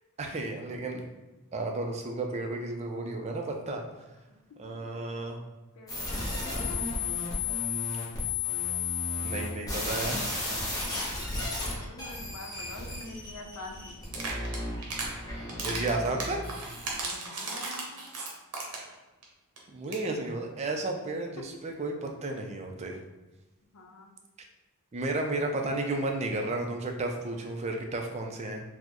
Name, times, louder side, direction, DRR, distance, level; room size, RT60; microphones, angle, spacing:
voice 1, 0.2-1.1 1.5-3.8 4.6-5.4 9.2-10.5 15.3-16.4 19.7-23.0 24.9-28.6, right 2 dB, 30° right, 3 dB, 0.4 m, -33 dB
voice 2, 4.6-5.3 5.8-6.9 11.2-14.3 17.0-18.1 20.9-21.0 21.4-21.5 23.7-24.1, left 2 dB, 80° left, 2 dB, 0.6 m, -47 dB
sound 1, 5.9-17.0, left 3 dB, 15° left, 0.8 m, -34 dB
sound 2, 14.1-15.1 15.5-18.9 19.2-19.3 19.6-19.7 19.8-20.1, right 3 dB, 80° right, 0.8 m, -36 dB
4.3 x 2.1 x 2.9 m, 1.1 s
head